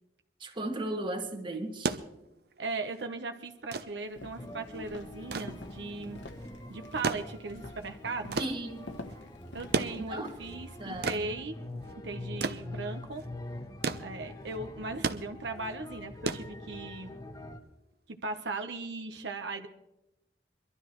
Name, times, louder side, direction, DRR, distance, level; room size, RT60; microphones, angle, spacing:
voice 1, 0.4-2.0 8.4-8.9 10.1-10.3 10.8-11.3, right 1 dB, 30° right, 4 dB, 1.7 m, -36 dB
sound 1, 1.6-17.1 18.3-18.5, right 4 dB, 60° right, 0.7 m, -37 dB
voice 2, 2.6-6.2 6.7-8.4 9.5-11.5 12.0-13.2 14.0-17.1 18.1-19.7, right 3 dB, 85° right, 6 dB, 1.0 m, -38 dB
Walk footsteps, 4.1-11.1, left 2 dB, 80° left, 1.3 m, -48 dB
sound 2, 4.4-17.6, left 1 dB, 20° left, 1.0 m, -44 dB
23.5 x 12.5 x 3.1 m, 0.89 s
head